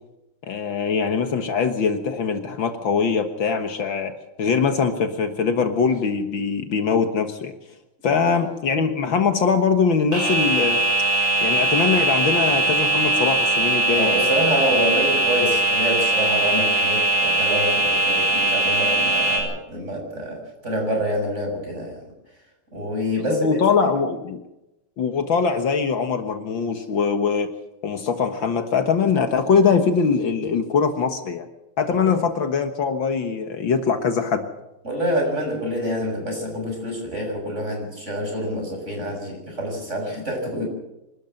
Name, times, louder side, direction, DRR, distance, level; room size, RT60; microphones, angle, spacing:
voice 1, 0.4-4.1 4.4-7.5 8.0-10.8 11.4-14.2 23.1-24.4 25.0-27.5 27.8-31.5 31.8-34.5, left 5 dB, 65° left, 7 dB, 2.1 m, -22 dB
sound 1, 10.1-19.4, right 2 dB, 55° right, 7.1 m, -20 dB
voice 2, 14.0-21.9 22.7-23.9 32.0-32.1 34.8-40.7, equal, 30° right, 1 dB, 7.1 m, -26 dB
25.5 x 13.0 x 7.8 m, 0.94 s
omnidirectional pair, 2.4 m